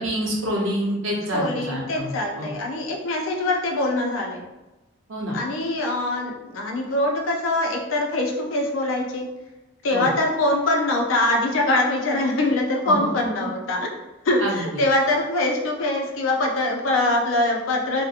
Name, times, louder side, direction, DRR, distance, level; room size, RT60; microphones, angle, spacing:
voice 1, 0.0-2.5 5.1-5.4 9.9-10.1 12.8-12.9 14.4-14.8, equal, 85° right, -2 dB, 0.7 m, -27 dB
voice 2, 1.3-4.4 5.3-9.3 9.8-13.9 14.2-18.0, left 2 dB, 90° left, 0 dB, 0.5 m, -23 dB
2.7 x 2.1 x 2.4 m, 1.1 s
head